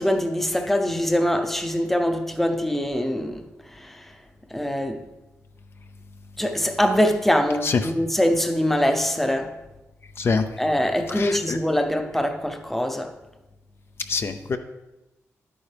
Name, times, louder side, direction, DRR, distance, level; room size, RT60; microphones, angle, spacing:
voice 1, 0.0-4.2 4.5-5.1 6.4-9.6 10.6-13.2, equal, 5° left, 0.7 m, -23 dB
voice 2, 11.1-11.6 14.1-14.6, left 4 dB, 50° left, 0.5 m, -24 dB
10.0 x 8.7 x 3.4 m
wide cardioid pair, 125°, 5 cm